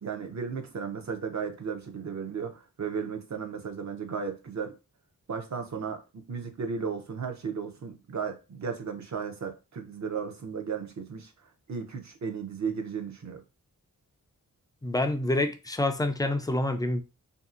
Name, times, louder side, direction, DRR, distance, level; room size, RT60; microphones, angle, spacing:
voice 1, 0.0-4.8 5.3-11.3 11.7-13.4, right 6 dB, 50° right, 0.6 m, -35 dB
voice 2, 14.8-17.0, left 1 dB, 10° left, 0.3 m, -27 dB
2.8 x 2.7 x 2.4 m
wide cardioid pair, 90°, 36 cm